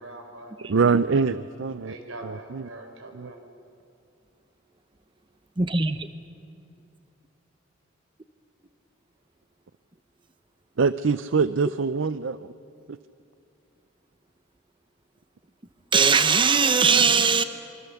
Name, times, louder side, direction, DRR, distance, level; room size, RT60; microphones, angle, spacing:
voice 1, 0.0-0.7 1.8-3.4, right 1 dB, 85° right, 3.9 m, -42 dB
voice 2, 0.7-2.0 2.2-2.7 3.1-3.3 10.8-12.5 12.9-13.0, right 5 dB, 65° right, 0.5 m, -24 dB
voice 3, 5.6-6.1 15.9-17.4, right 5 dB, 25° right, 0.7 m, -20 dB
26.5 x 24.5 x 7.1 m
head